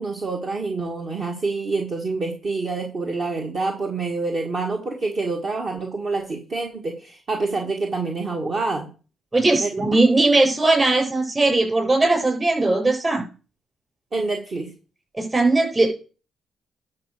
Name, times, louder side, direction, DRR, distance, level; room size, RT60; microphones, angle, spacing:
voice 1, 0.0-8.9 9.6-9.9 14.1-14.7, right 3 dB, 45° right, 2 dB, 1.7 m, -27 dB
voice 2, 9.3-13.2 15.2-16.0, right 2 dB, 25° right, 1 dB, 6.2 m, -19 dB
11.5 x 4.4 x 6.6 m, 0.36 s
cardioid pair, 90°, 0 cm